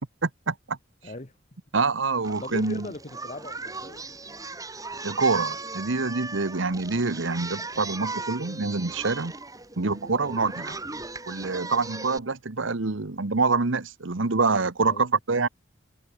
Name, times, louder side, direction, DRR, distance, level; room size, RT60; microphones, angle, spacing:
voice 1, 0.2-0.8 1.7-2.9 5.0-9.3 9.8-10.8 11.3-15.5, right 4 dB, 80° right, 1.2 m, -26 dB
voice 2, 1.0-1.3 2.4-4.1 8.5-8.7 10.2-10.5 14.8-15.1, left 2 dB, 35° left, 2.1 m, -39 dB
Singing, 2.2-12.2, right 3 dB, 20° right, 2.7 m, -38 dB
head